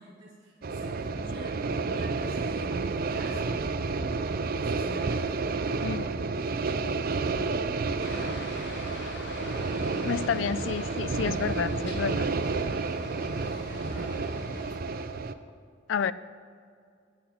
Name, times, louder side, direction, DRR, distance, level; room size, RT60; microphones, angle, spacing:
voice 1, 0.0-3.8 4.5-5.3 10.2-10.5 13.2-14.1, right 1 dB, 25° right, -9 dB, 2.3 m, -45 dB
sound 1, 0.6-15.3, right 4 dB, 50° right, 0.5 m, -30 dB
Aircraft, 8.0-14.8, left 2 dB, 65° left, 1.4 m, -42 dB
voice 2, 10.0-12.3 15.9-16.1, left 7 dB, 85° left, 17 dB, 0.4 m, -30 dB
19.0 x 6.3 x 4.3 m, 2.3 s
head